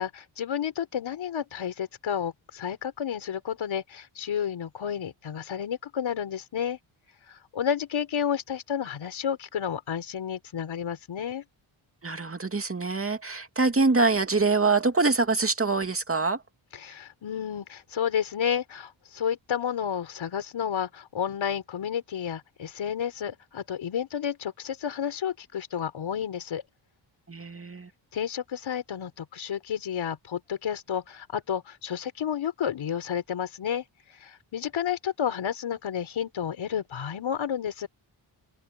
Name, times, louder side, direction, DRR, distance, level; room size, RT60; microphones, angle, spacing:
voice 1, 0.0-6.8 7.3-11.4 16.7-26.6 28.1-33.8 34.2-37.9, left 8 dB, 75° left, 4.3 m, -31 dB
voice 2, 12.0-16.4 27.3-27.9, right 3 dB, 30° right, 2.5 m, -24 dB
open air
cardioid pair, 75°, 47 cm